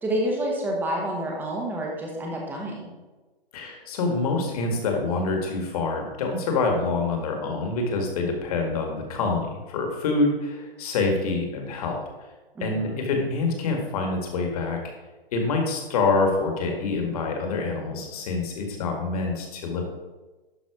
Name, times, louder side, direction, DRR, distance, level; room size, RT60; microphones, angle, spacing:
voice 1, 0.0-2.9 12.5-13.1, right 1 dB, 5° right, -1 dB, 1.1 m, -29 dB
voice 2, 3.5-12.0 12.6-14.8 15.3-19.9, left 3 dB, 40° left, 2 dB, 2.0 m, -26 dB
11.5 x 4.0 x 4.9 m, 1.2 s
hypercardioid pair, 150°, 30 cm